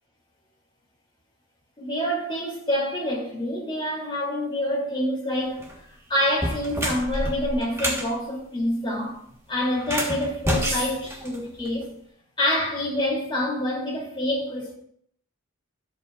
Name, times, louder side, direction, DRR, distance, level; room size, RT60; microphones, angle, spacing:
voice 1, 1.8-5.7 6.1-9.2 9.5-11.9 12.4-14.8, left 1 dB, 25° left, 3.3 m, -27 dB
sound 1, 5.5-5.8 6.3-8.1 9.8-11.8, equal, 15° right, 1.5 m, -28 dB
13.0 x 8.0 x 2.6 m
head